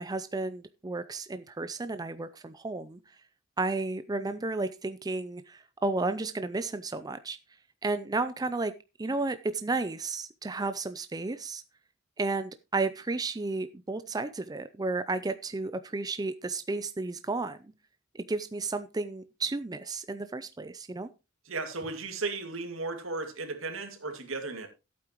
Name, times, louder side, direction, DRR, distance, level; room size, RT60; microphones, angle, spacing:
voice 1, 0.0-3.0 3.6-7.4 7.8-8.7 9.0-11.6 12.2-17.7 18.1-21.1, right 3 dB, 20° right, 0.5 m, -32 dB
voice 2, 21.5-24.7, right 3 dB, 75° right, 2.3 m, -35 dB
14.0 x 8.6 x 3.0 m
head